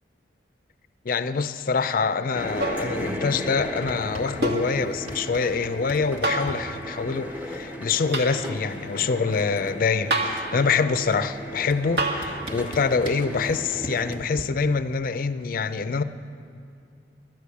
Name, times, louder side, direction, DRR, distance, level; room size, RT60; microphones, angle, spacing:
voice 1, 1.0-16.0, left 5 dB, 50° left, 0.4 m, -25 dB
sound 1, 2.3-14.2, equal, 10° right, 0.9 m, -36 dB
sound 2, 2.6-2.9 4.4-4.7 6.2-6.6 8.1-8.3 10.1-10.5 12.0-12.3 14.0-14.1, right 1 dB, 65° right, 1.5 m, -25 dB
sound 3, 3.6-4.6 4.8-6.6 7.9-8.0 8.2-8.6 8.9-10.2 11.1-11.2 11.7-14.4, right 1 dB, 35° right, 1.1 m, -39 dB
12.0 x 10.0 x 8.3 m
head